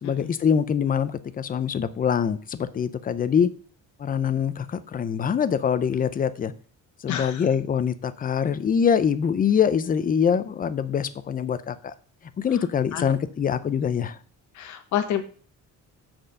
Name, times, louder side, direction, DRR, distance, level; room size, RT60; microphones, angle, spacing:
voice 1, 0.0-3.5 4.0-6.5 7.0-11.9 12.4-14.2, left 7 dB, 30° left, 14 dB, 0.5 m, -24 dB
voice 2, 7.1-7.4 12.9-13.0 14.6-15.2, left 10 dB, 70° left, 7 dB, 1.1 m, -28 dB
7.4 x 4.4 x 6.4 m, 0.42 s
cardioid pair, 160°, 31 cm